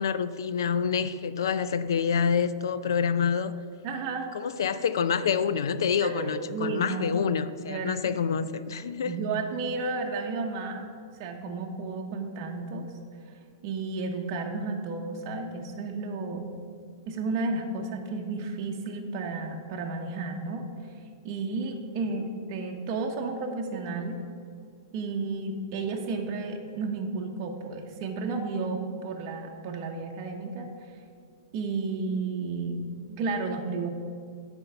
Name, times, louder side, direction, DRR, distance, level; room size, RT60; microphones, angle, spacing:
voice 1, 0.0-3.5 4.3-9.2, left 7 dB, 90° left, 14 dB, 0.4 m, -27 dB
voice 2, 3.8-4.3 6.0-7.2 7.7-8.2 9.0-10.8 11.2-12.9 13.6-16.5 17.1-20.6 21.2-24.2 24.9-30.7 31.5-33.9, right 3 dB, 40° right, 1 dB, 0.9 m, -32 dB
9.1 x 4.5 x 6.7 m, 2.1 s
supercardioid pair, 155°, 2 cm